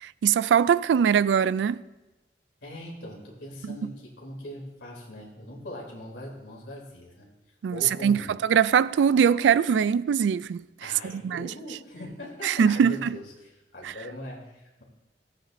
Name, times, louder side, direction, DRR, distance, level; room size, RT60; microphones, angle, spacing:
voice 1, 0.0-1.8 7.6-11.5 12.4-13.2 13.8-13.9, right 7 dB, 85° right, 0.3 m, -22 dB
voice 2, 2.6-7.3 7.7-8.3 10.8-14.8, left 1 dB, 75° left, 3.3 m, -41 dB
17.5 x 9.3 x 2.7 m
head